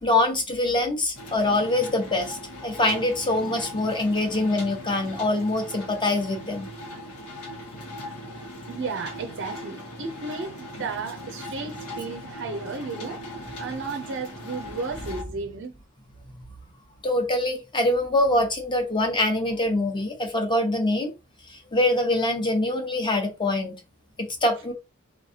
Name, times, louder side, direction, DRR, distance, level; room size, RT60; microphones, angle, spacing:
voice 1, 0.0-2.4 2.6-6.7 17.0-21.1 21.7-23.8 24.2-24.7, left 2 dB, 20° left, 0.9 m, -24 dB
sound 1, 1.1-15.2, left 1 dB, 90° left, 1.5 m, -39 dB
voice 2, 8.6-15.7, right 4 dB, 55° right, 0.5 m, -34 dB
4.2 x 3.1 x 2.8 m
head